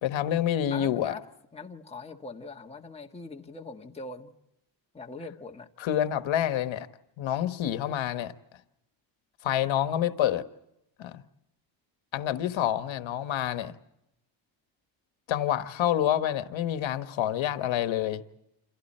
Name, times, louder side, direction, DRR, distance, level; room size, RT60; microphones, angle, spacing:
voice 1, 0.0-1.1 5.8-6.9 7.2-8.3 9.4-10.5 11.0-11.2 12.1-13.7 15.3-18.2, left 11 dB, 75° left, 1.4 m, -27 dB
voice 2, 0.7-1.2 1.5-4.3 4.9-5.7, left 3 dB, 15° left, 1.6 m, -42 dB
29.0 x 27.5 x 4.4 m
cardioid pair, 140°, 47 cm